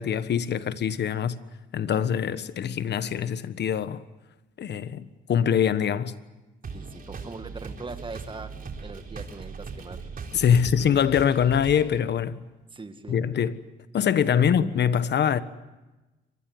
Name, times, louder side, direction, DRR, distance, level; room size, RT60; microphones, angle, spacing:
voice 1, 0.0-1.4 1.7-4.0 4.6-6.1 10.3-12.4 13.1-13.6 13.9-15.4, left 8 dB, 60° left, 1.3 m, -24 dB
sound 1, 6.6-12.0, right 4 dB, 45° right, 3.8 m, -39 dB
voice 2, 6.7-8.5 8.8-10.1 12.7-13.2 14.3-14.5, right 3 dB, 25° right, 2.1 m, -40 dB
24.5 x 20.5 x 9.4 m
cardioid pair, 90°, 20 cm